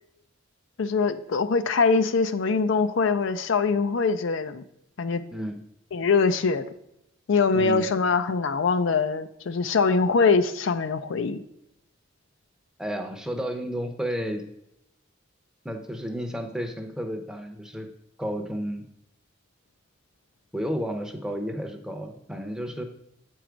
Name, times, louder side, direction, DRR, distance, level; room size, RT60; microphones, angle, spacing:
voice 1, 0.8-4.6 5.0-5.2 5.9-6.7 7.3-11.4, left 4 dB, 65° left, 11 dB, 0.4 m, -23 dB
voice 2, 7.5-8.0 12.8-14.4 15.6-17.9 18.2-18.8 20.5-22.8, equal, 5° right, 5 dB, 0.7 m, -32 dB
8.4 x 4.6 x 5.0 m, 0.80 s
head